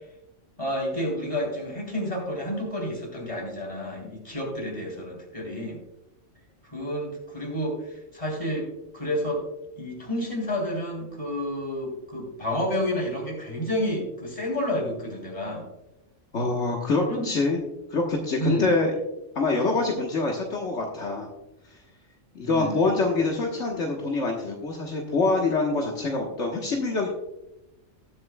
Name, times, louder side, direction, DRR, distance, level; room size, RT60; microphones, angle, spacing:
voice 1, 0.6-5.8 6.6-8.7 8.9-9.4 9.8-15.7 17.1-17.3 18.4-18.7 22.4-23.0, equal, 25° left, 0 dB, 3.3 m, -30 dB
voice 2, 16.3-17.6 17.9-18.9 19.3-21.3 22.3-27.1, left 3 dB, 70° left, -1 dB, 1.6 m, -25 dB
19.5 x 7.5 x 2.2 m, 0.90 s
omnidirectional pair, 1.3 m